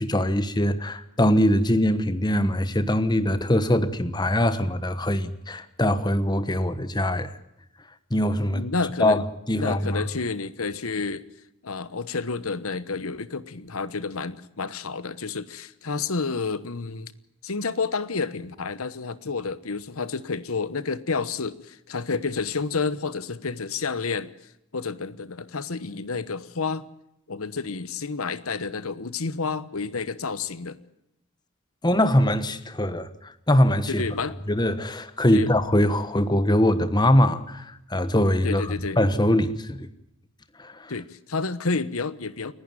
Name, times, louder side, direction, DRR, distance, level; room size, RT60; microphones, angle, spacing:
voice 1, 0.0-7.3 8.1-8.6 9.0-10.0 31.8-34.0 34.5-39.9 40.6-40.9, left 1 dB, 20° left, 1.2 m, -22 dB
voice 2, 8.5-9.2 9.6-11.2 11.6-17.1 17.4-24.3 24.7-26.9 27.3-30.8 33.9-34.4 35.3-35.5 38.4-39.0 40.9-42.5, left 4 dB, 75° left, 1.1 m, -30 dB
29.5 x 11.5 x 9.0 m
head